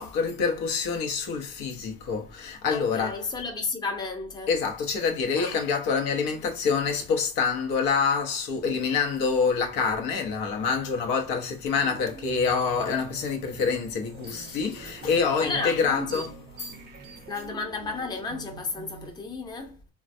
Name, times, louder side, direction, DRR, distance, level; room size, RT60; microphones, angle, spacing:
voice 1, 0.0-3.2 4.5-16.3, left 5 dB, 75° left, 0.8 m, -26 dB
voice 2, 2.7-4.6 15.4-16.3 17.3-19.8, left 3 dB, 10° left, 0.6 m, -33 dB
sound 1, 11.7-19.2, right 4 dB, 30° right, 0.6 m, -44 dB
3.2 x 2.3 x 2.5 m
supercardioid pair, 110°, 35 cm